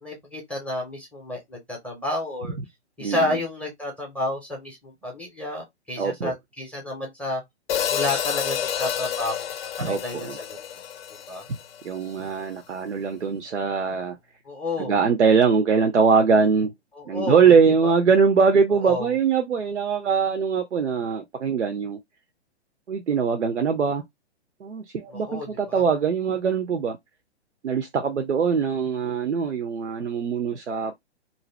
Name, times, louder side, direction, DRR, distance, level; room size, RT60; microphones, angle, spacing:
voice 1, 0.0-2.5 3.0-7.4 7.9-9.5 9.9-10.8 11.3-11.4 14.4-15.0 16.9-17.5 17.8-17.9 18.8-19.1 25.1-25.8, left 1 dB, 5° left, 0.5 m, -31 dB
voice 2, 3.0-3.4 6.0-6.3 9.8-10.4 11.8-14.2 14.8-16.7 17.1-22.0 22.9-24.0 24.6-27.0 27.6-30.9, right 6 dB, 90° right, 0.6 m, -22 dB
Hi-hat, 7.7-12.0, left 9 dB, 60° left, 0.5 m, -29 dB
2.6 x 2.1 x 3.0 m
figure-of-eight pair, 125°, 34 cm